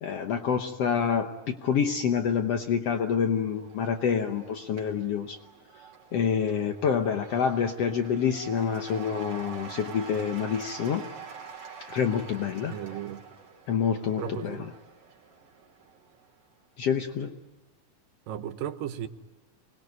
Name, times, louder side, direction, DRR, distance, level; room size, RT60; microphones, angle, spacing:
voice 1, 0.0-5.4 6.1-11.1 11.9-12.7 13.7-14.6 16.8-17.3, left 7 dB, 65° left, 1.6 m, -27 dB
Cheering / Applause / Crowd, 3.0-16.5, right 6 dB, 60° right, 4.3 m, -46 dB
voice 2, 12.7-13.3 14.2-14.7 18.3-19.1, right 10 dB, 80° right, 2.7 m, -35 dB
26.0 x 20.0 x 9.4 m
omnidirectional pair, 3.9 m